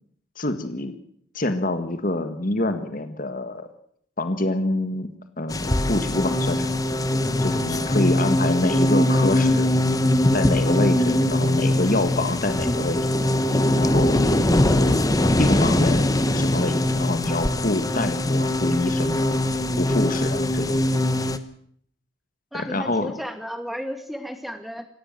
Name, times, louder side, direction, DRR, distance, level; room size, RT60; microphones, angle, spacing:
voice 1, 0.4-0.9 1.4-3.7 4.2-5.1 5.4-6.7 7.4-9.7 10.3-13.1 13.8-19.4 19.7-20.8 22.5-23.1, left 2 dB, 40° left, 8 dB, 1.7 m, -26 dB
sound 1, 5.5-21.4, left 1 dB, 15° left, 1.0 m, -21 dB
voice 2, 14.4-15.0 22.5-24.9, equal, ahead, 8 dB, 2.0 m, -34 dB
18.5 x 16.0 x 9.0 m, 0.65 s
head